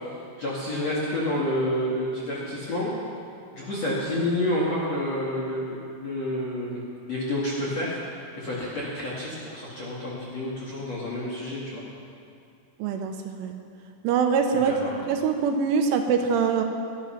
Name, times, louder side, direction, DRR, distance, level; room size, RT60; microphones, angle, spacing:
voice 1, 0.1-2.9 3.5-6.8 7.1-8.0 8.4-11.8 14.6-14.9, left 1 dB, 50° left, -6 dB, 2.1 m, -29 dB
voice 2, 12.8-13.5 14.0-14.8 15.0-16.6, right 6 dB, 80° right, 5 dB, 3.2 m, -23 dB
21.0 x 11.5 x 5.8 m, 2.4 s
omnidirectional pair, 5.9 m